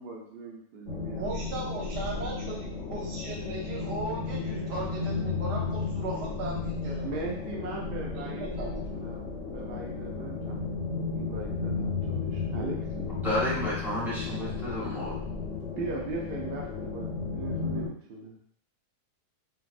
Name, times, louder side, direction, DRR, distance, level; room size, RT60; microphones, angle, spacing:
voice 1, 0.0-1.3 7.0-10.7 11.1-13.3 15.7-18.3, right 3 dB, 55° right, -2 dB, 0.6 m, -39 dB
Untitled cave, 0.9-17.9, left 4 dB, 55° left, 0.8 m, -34 dB
voice 2, 1.1-7.1 8.1-8.8, right 2 dB, 90° right, -2 dB, 1.5 m, -37 dB
voice 3, 13.1-15.2, equal, ahead, -8 dB, 0.8 m, -31 dB
3.3 x 2.5 x 2.5 m, 0.65 s
omnidirectional pair, 1.7 m